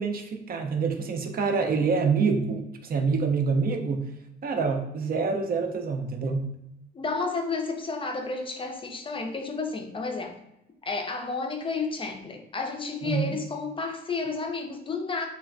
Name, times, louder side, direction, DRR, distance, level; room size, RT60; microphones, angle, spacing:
voice 1, 0.0-4.1 4.4-6.5 13.0-13.3, right 5 dB, 50° right, 5 dB, 0.5 m, -26 dB
voice 2, 6.9-10.4 10.8-15.3, left 4 dB, 25° left, 4 dB, 0.4 m, -31 dB
3.3 x 2.1 x 2.4 m, 0.86 s
cardioid pair, 90°, 20 cm